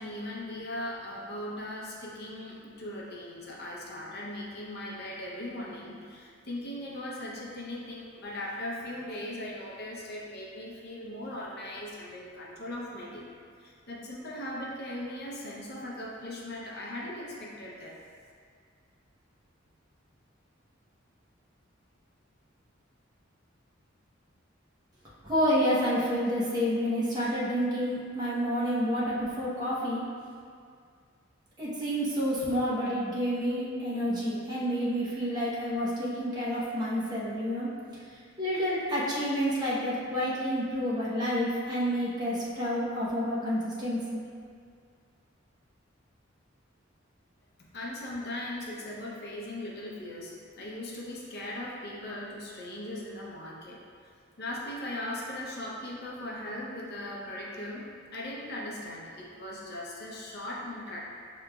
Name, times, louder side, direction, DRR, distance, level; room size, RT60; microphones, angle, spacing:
voice 1, 0.0-13.3 13.6-18.0 47.7-54.1 54.4-57.9 58.1-61.0, left 1 dB, 55° left, -4 dB, 0.6 m, -39 dB
voice 2, 25.2-30.0 31.6-37.7 38.4-44.2, equal, 20° right, -8 dB, 0.9 m, -29 dB
6.1 x 2.9 x 2.3 m, 2.1 s
head